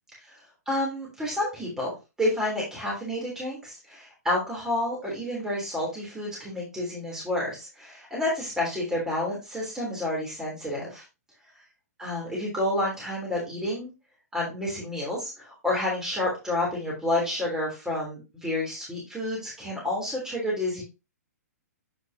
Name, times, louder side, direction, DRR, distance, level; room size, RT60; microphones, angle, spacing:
voice 1, 0.7-11.0 12.0-13.9 14.3-20.8, left 1 dB, 5° right, -4 dB, 3.3 m, -29 dB
8.0 x 5.9 x 2.8 m, 0.26 s
figure-of-eight pair, 115°, 9 cm